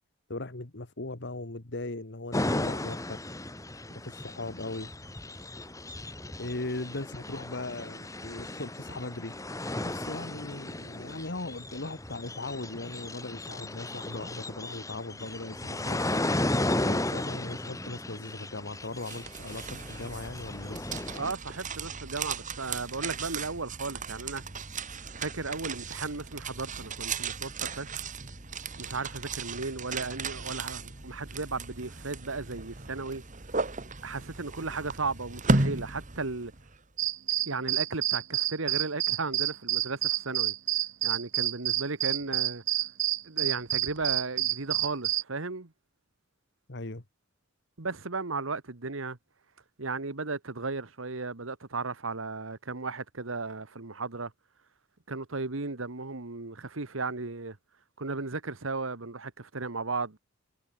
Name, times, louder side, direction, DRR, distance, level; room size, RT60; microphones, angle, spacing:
voice 1, 0.3-3.2 3.9-4.9 6.4-9.4 9.8-16.2 16.8-21.0 46.7-47.0, left 2 dB, 60° left, 1.9 m, -38 dB
sound 1, 2.3-21.3, left 1 dB, 15° left, 2.2 m, -35 dB
sound 2, 18.7-36.8, right 3 dB, 40° right, 2.2 m, -35 dB
voice 2, 21.1-24.4 25.2-28.0 28.8-33.2 34.0-36.5 37.5-40.5 41.0-42.6 43.2-45.7 47.8-49.2 49.8-54.3 55.1-57.6 58.0-60.2, right 3 dB, 90° right, 1.6 m, -35 dB
sound 3, 37.0-45.2, right 14 dB, 65° right, 0.7 m, -28 dB
head